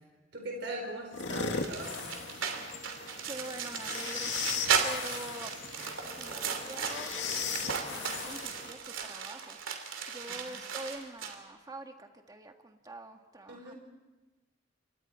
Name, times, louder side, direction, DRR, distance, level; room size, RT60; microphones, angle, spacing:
voice 1, 0.3-2.1 10.3-10.5 13.5-13.7, right 1 dB, 60° right, 2 dB, 4.4 m, -40 dB
sound 1, 1.1-8.7, left 5 dB, 70° left, 2.2 m, -38 dB
sound 2, 1.5-11.4, right 6 dB, 85° right, 2.9 m, -36 dB
voice 2, 3.3-5.5 6.1-7.1 7.4-13.7, right 2 dB, 20° right, 5 dB, 1.7 m, -45 dB
sound 3, 5.8-9.6 10.3-10.4 10.6-10.7 10.9-11.0 11.3-11.4, equal, ahead, 1.8 m, -54 dB
29.5 x 25.5 x 4.4 m, 1.2 s
head